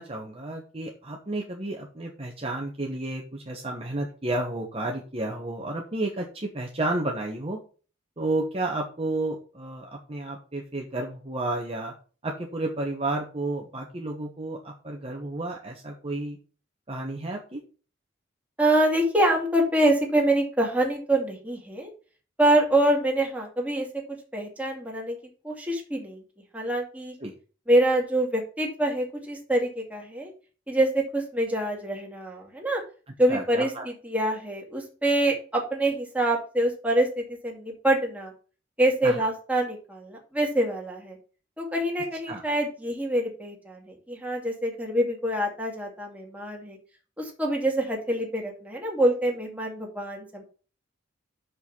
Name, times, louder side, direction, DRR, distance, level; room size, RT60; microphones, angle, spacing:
voice 1, 0.0-7.6 8.2-11.9 12.2-16.4 16.9-17.6 27.2-27.3 33.3-33.8 39.0-39.2 42.3-42.4, right 2 dB, 30° right, 0 dB, 1.2 m, -31 dB
voice 2, 18.6-21.9 22.4-23.9 24.3-25.2 25.4-26.2 26.5-27.1 27.7-30.3 30.7-32.8 33.2-38.3 38.8-41.2 41.6-46.8 47.2-50.4, right 1 dB, 10° right, 0 dB, 2.4 m, -25 dB
6.3 x 5.5 x 7.1 m, 0.38 s
head